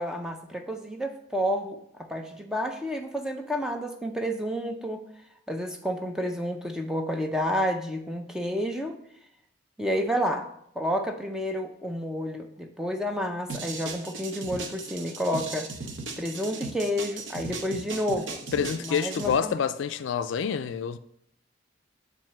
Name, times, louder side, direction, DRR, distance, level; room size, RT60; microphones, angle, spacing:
voice 1, 0.0-5.0 5.5-9.0 9.8-10.5 10.8-15.7 16.2-18.4 18.8-19.5, equal, 5° right, 0.5 m, -30 dB
sound 1, 13.5-19.4, right 4 dB, 75° right, 0.8 m, -37 dB
voice 2, 18.5-21.0, left 7 dB, 75° left, 0.3 m, -27 dB
7.3 x 2.7 x 5.8 m
head